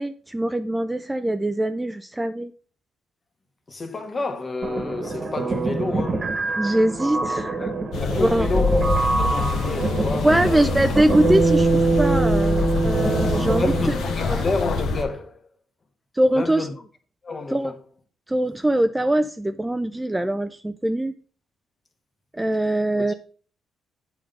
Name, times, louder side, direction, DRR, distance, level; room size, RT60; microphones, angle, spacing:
voice 1, 0.0-2.5 6.6-7.6 8.2-8.5 10.2-11.7 12.0-13.7 14.3-14.4 16.2-16.7 17.5-17.7 18.3-21.1 22.3-23.1, right 1 dB, 10° right, 0.4 m, -22 dB
voice 2, 3.7-6.4 7.6-10.8 13.4-15.4 16.3-16.7 17.2-17.8 23.1-23.2, left 3 dB, 35° left, 1.3 m, -30 dB
sound 1, 4.6-14.1, right 3 dB, 35° right, 1.2 m, -24 dB
sound 2, 7.9-15.0, left 3 dB, 75° left, 1.2 m, -25 dB
8.6 x 3.8 x 5.3 m
cardioid pair, 90°, 0 cm